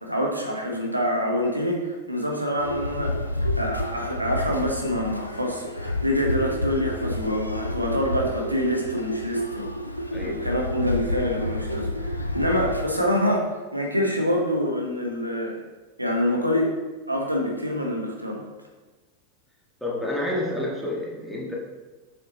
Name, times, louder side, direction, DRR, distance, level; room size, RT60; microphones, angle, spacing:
voice 1, 0.0-9.7 10.0-15.6 16.0-16.8 17.1-18.4, equal, 85° right, 0 dB, 1.1 m, -26 dB
sound 1, 2.6-12.8, left 1 dB, 85° left, 0.6 m, -29 dB
voice 2, 10.1-10.5 19.8-21.5, left 1 dB, ahead, -4 dB, 1.7 m, -29 dB
7.3 x 6.6 x 3.0 m, 1.2 s
figure-of-eight pair, 90°, 0 cm